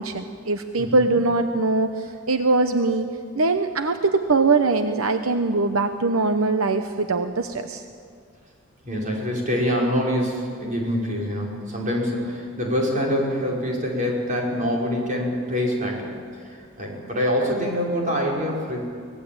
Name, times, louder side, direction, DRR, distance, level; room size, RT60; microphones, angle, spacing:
voice 1, 0.0-3.1 3.3-7.8, right 3 dB, 80° right, 8 dB, 0.9 m, -22 dB
voice 2, 0.8-1.1 8.8-16.1 16.4-18.8, equal, 35° right, -3 dB, 5.4 m, -25 dB
24.0 x 18.5 x 8.8 m, 2.3 s
head